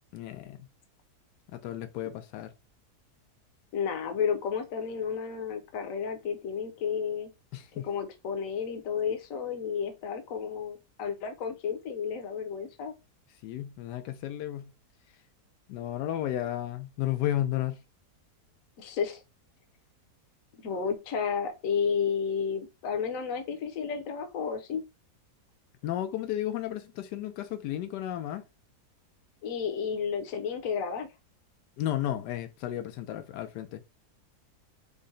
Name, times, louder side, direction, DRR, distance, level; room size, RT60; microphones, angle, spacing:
voice 1, 0.1-0.7 1.5-2.5 7.5-7.9 13.4-14.7 15.7-17.8 25.8-28.4 31.8-33.8, left 12 dB, 85° left, 1.2 m, -33 dB
voice 2, 3.7-7.3 7.8-12.9 18.8-19.2 20.6-24.8 29.4-31.1, left 6 dB, 60° left, 1.1 m, -32 dB
3.9 x 2.1 x 3.8 m
omnidirectional pair, 1.8 m